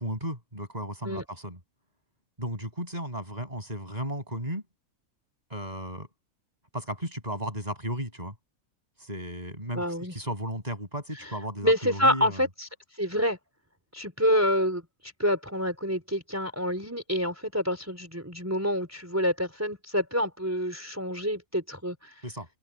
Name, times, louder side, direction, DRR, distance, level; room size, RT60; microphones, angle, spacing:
voice 1, 0.0-1.6 2.4-4.6 5.5-6.1 6.7-8.3 9.0-9.8 10.1-12.4 22.2-22.5, equal, 25° right, 7.0 m, -34 dB
voice 2, 9.7-10.1 11.6-12.7 13.0-13.4 13.9-22.1, equal, 10° right, 4.4 m, -27 dB
omnidirectional pair, 1.5 m